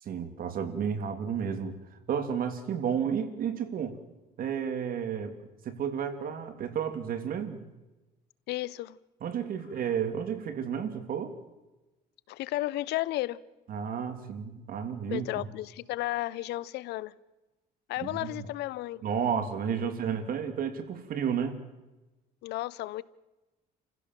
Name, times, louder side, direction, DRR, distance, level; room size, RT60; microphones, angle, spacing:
voice 1, 0.0-4.0 4.4-5.4 5.6-7.6 9.2-11.3 13.7-15.5 18.0-18.5 19.0-21.6, right 7 dB, 60° right, 3.1 m, -32 dB
voice 2, 8.5-9.0 12.3-13.4 15.1-17.1 17.9-19.0 19.8-19.9 22.4-23.0, left 16 dB, 80° left, 0.8 m, -33 dB
28.5 x 16.0 x 7.5 m
cardioid pair, 110°, 17 cm